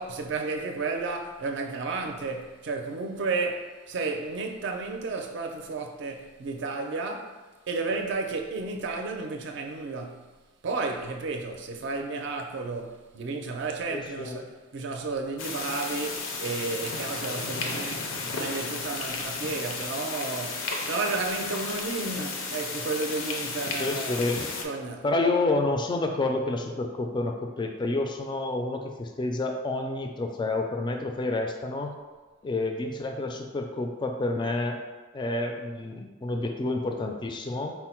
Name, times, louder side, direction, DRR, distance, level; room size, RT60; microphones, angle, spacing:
voice 1, 0.0-7.4 7.7-10.3 10.6-24.2 24.6-25.1, right 3 dB, 60° right, 0.5 m, -32 dB
voice 2, 13.9-14.4 23.8-24.4 25.0-31.9 32.4-34.8 35.1-37.7, left 2 dB, 25° left, 0.3 m, -29 dB
sound 1, 15.4-24.6, left 3 dB, 85° left, 0.5 m, -33 dB
4.4 x 2.0 x 4.3 m
head